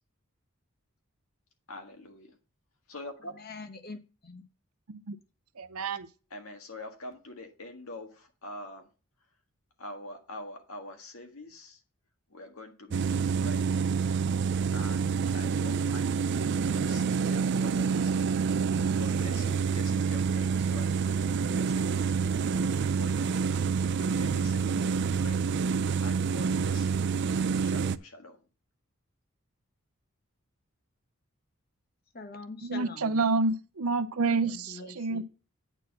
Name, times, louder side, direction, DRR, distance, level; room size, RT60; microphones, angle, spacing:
voice 1, 1.7-2.4 2.9-3.3 6.3-8.9 9.8-11.8 12.3-13.9 14.7-18.3 18.9-23.3 24.0-25.5 26.0-27.1 27.6-28.4, left 2 dB, 75° left, 1.7 m, -45 dB
voice 2, 3.3-4.5 32.1-33.2 34.5-35.2, left 3 dB, 45° left, 1.1 m, -44 dB
voice 3, 5.6-6.1 32.6-35.2, right 3 dB, 85° right, 0.7 m, -29 dB
sound 1, 12.9-28.0, right 6 dB, 55° right, 0.4 m, -27 dB
8.9 x 4.4 x 5.9 m
head